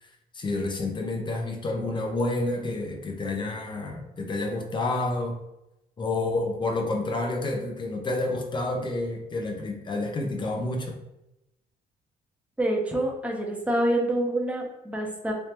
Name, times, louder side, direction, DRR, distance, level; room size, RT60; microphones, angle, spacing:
voice 1, 0.0-5.4 6.0-11.0, left 2 dB, 30° left, 2 dB, 0.7 m, -29 dB
voice 2, 12.6-15.3, right 1 dB, 10° right, 0 dB, 0.8 m, -26 dB
3.4 x 3.1 x 2.9 m, 0.89 s
cardioid pair, 110°, 17 cm